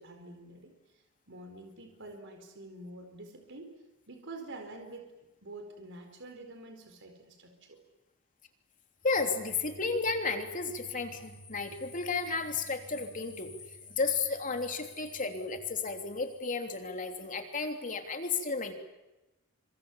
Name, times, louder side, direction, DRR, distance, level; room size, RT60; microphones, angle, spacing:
voice 1, 0.0-3.7 4.1-5.1 5.4-7.8, right 2 dB, 60° right, 5 dB, 4.5 m, -47 dB
voice 2, 9.0-13.5 13.9-18.7, left 4 dB, 40° left, 5 dB, 3.2 m, -33 dB
sound 1, 11.2-16.6, left 5 dB, 15° left, 6.5 m, -54 dB
29.0 x 26.5 x 7.2 m, 1.0 s
head